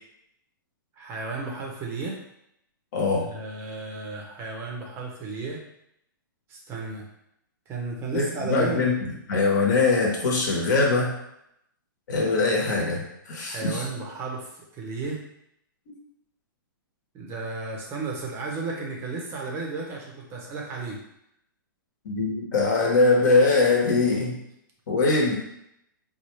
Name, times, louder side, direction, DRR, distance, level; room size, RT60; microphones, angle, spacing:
voice 1, 1.0-2.2 3.2-5.6 6.5-7.0 7.7-8.9 13.5-15.2 17.1-21.0, right 3 dB, 20° right, -1 dB, 0.6 m, -33 dB
voice 2, 2.9-3.3 8.1-11.1 12.1-13.0 13.3-13.8 22.0-24.4 24.9-25.3, left 3 dB, 55° left, -1 dB, 1.1 m, -22 dB
4.2 x 2.3 x 3.1 m, 0.79 s
hypercardioid pair, 150°, 11 cm